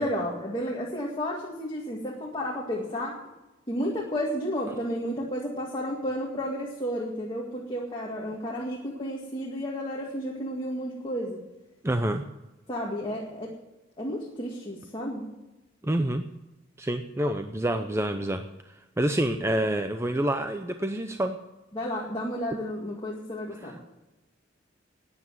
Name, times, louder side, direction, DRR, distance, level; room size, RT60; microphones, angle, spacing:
voice 1, 0.0-3.2 3.7-11.4 12.7-13.5 14.0-15.2 21.7-23.8, equal, 25° left, -3 dB, 2.1 m, -32 dB
voice 2, 11.8-12.2 15.8-16.2 16.8-21.4 23.6-23.7, right 1 dB, 15° right, 7 dB, 0.6 m, -28 dB
12.0 x 9.7 x 7.7 m, 1.0 s
head